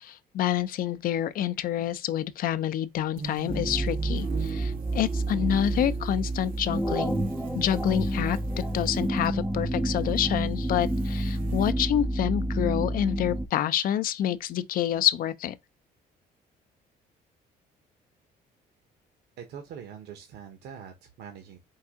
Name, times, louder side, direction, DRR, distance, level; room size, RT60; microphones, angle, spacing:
voice 1, 0.0-7.2 7.5-15.6, left 11 dB, 60° left, 0.5 m, -28 dB
sound 1, 3.1-9.3 9.9-11.7, right 6 dB, 55° right, 0.7 m, -42 dB
Chord One (Pad), 3.5-13.5, right 1 dB, ahead, 0.4 m, -29 dB
voice 2, 19.4-21.6, right 8 dB, 75° right, 1.0 m, -43 dB
4.6 x 2.6 x 3.5 m
cardioid pair, 110°, 17 cm